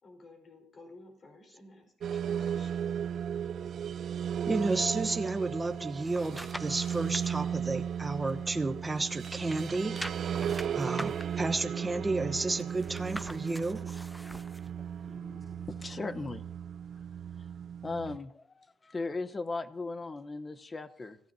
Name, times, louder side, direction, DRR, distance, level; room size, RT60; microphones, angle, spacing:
voice 1, 0.0-2.9, left 2 dB, 45° left, 3 dB, 4.7 m, -54 dB
sound 1, 2.0-18.2, right 8 dB, 65° right, 0.6 m, -35 dB
voice 2, 4.5-13.8, right 3 dB, 20° right, 7 dB, 1.1 m, -32 dB
sound 2, 5.7-7.3 7.8-8.9 9.1-14.7 15.1-15.2, equal, ahead, 0.6 m, -45 dB
voice 3, 14.8-16.4 17.8-21.2, left 3 dB, 30° left, 13 dB, 1.0 m, -38 dB
26.5 x 15.5 x 2.8 m, 0.68 s
cardioid pair, 90°, 0 cm